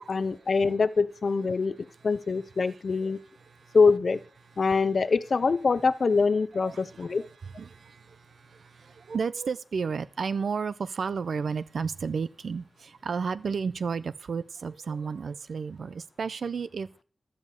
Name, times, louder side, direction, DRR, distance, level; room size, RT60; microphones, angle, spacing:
voice 1, 0.0-3.2 3.7-4.2 4.6-7.2, left 4 dB, 65° left, 0.7 m, -24 dB
voice 2, 3.4-3.8 4.7-4.8 6.6-17.0, right 5 dB, 85° right, 0.6 m, -33 dB
13.0 x 5.1 x 8.3 m
wide cardioid pair, 70°, 0 cm